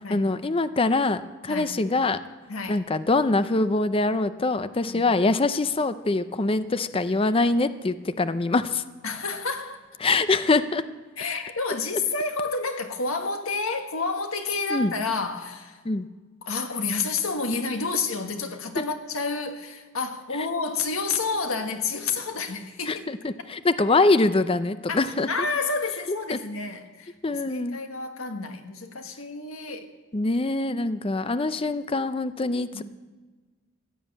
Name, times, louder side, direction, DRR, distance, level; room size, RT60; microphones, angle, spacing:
voice 1, 0.1-2.2 2.7-8.8 10.0-10.8 14.7-14.9 15.8-16.1 22.9-25.3 26.3-26.4 27.2-27.8 30.1-32.8, left 3 dB, 25° left, 12 dB, 0.5 m, -24 dB
voice 2, 1.4-1.8 2.5-2.9 4.9-5.0 9.0-9.8 11.2-15.8 16.4-23.1 24.9-29.9 32.7-32.8, left 4 dB, 80° left, 6 dB, 1.5 m, -30 dB
15.5 x 9.3 x 8.6 m, 1.3 s
head